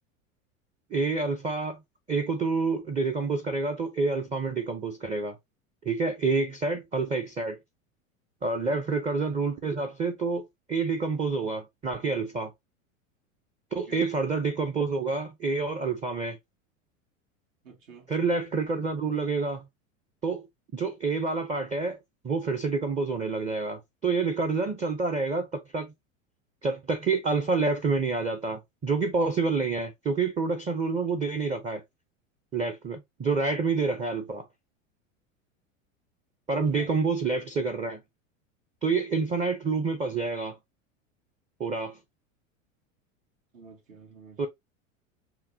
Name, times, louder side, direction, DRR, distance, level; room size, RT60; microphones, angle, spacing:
voice 1, 0.9-1.8 2.1-5.4 5.8-7.6 8.4-12.5 13.7-16.4 18.1-19.6 20.2-20.5 20.7-22.0 22.2-25.9 26.6-31.8 32.5-34.4 36.5-38.0 38.8-40.6 41.6-42.0 44.4-44.5, right 4 dB, 15° right, 0.5 m, -28 dB
voice 2, 17.6-18.1 36.7-36.9 43.5-44.5, right 5 dB, 70° right, 1.9 m, -49 dB
5.7 x 2.2 x 2.7 m
hypercardioid pair, 95°, 40 cm